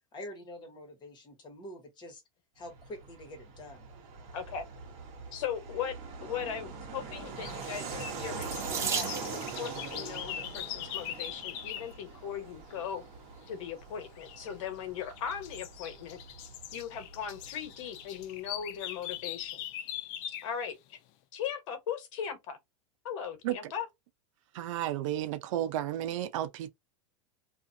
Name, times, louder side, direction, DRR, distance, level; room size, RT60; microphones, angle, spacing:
voice 1, 0.1-2.2 2.5-3.9, left 1 dB, 25° left, 1.3 m, -46 dB
Fixed-wing aircraft airplane, 2.6-18.8, right 5 dB, 50° right, 1.0 m, -43 dB
voice 2, 4.3-4.6 5.3-5.9 6.2-13.0 13.5-16.2 16.7-19.6 20.3-21.0 21.3-22.6 23.0-23.9, left 8 dB, 65° left, 1.1 m, -38 dB
sound 1, 7.2-11.9 14.2-14.5 15.0-20.6, left 12 dB, 50° left, 0.4 m, -42 dB
Water tap faucet / Sink (filling or washing), 8.4-9.7 10.7-11.1 11.8-11.9 12.2-12.3, right 5 dB, 15° right, 0.7 m, -35 dB
voice 3, 24.5-26.7, right 12 dB, 70° right, 0.6 m, -32 dB
2.5 x 2.4 x 2.6 m
supercardioid pair, 130°, 17 cm